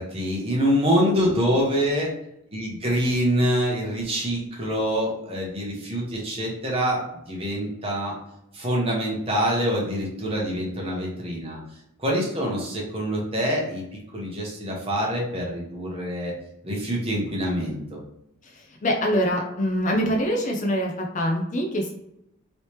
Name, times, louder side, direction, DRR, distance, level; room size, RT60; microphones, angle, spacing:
voice 1, 0.0-2.1 2.5-8.1 8.5-11.6 12.0-16.3 16.6-18.0, equal, 25° right, -3 dB, 0.9 m, -25 dB
voice 2, 18.4-21.9, equal, 35° left, 1 dB, 0.4 m, -24 dB
3.1 x 2.8 x 3.1 m, 0.81 s
head